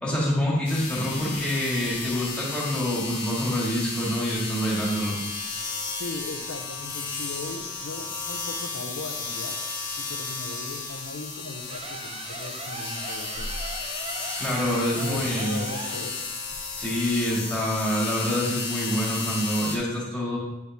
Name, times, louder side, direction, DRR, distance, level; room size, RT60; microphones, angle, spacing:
voice 1, 0.0-5.1 14.4-15.7 16.7-20.4, equal, 5° left, -6 dB, 2.0 m, -26 dB
sound 1, 0.7-19.8, left 4 dB, 60° left, 1.5 m, -33 dB
voice 2, 6.0-9.6 9.9-13.5 14.9-16.3, left 3 dB, 85° left, 5 dB, 0.8 m, -38 dB
sound 2, 11.7-16.1, right 3 dB, 30° right, 0.5 m, -39 dB
9.4 x 4.6 x 3.5 m, 0.98 s
head